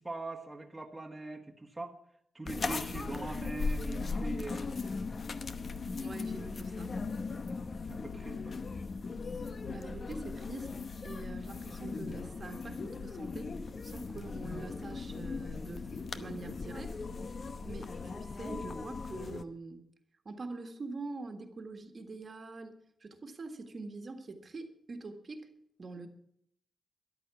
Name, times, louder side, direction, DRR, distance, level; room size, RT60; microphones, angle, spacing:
voice 1, 0.0-2.0 2.3-4.8 7.9-8.5 17.6-17.7, right 2 dB, 10° right, 1 dB, 1.6 m, -42 dB
sound 1, 2.4-19.4, left 4 dB, 40° left, 0.9 m, -38 dB
voice 2, 6.0-7.0 9.7-10.7 11.0-13.5 13.8-15.9 16.1-17.0 17.6-19.8 20.2-25.5 25.8-26.1, right 3 dB, 35° right, 6 dB, 1.6 m, -44 dB
14.0 x 11.0 x 6.9 m, 0.70 s
wide cardioid pair, 155°, 0 cm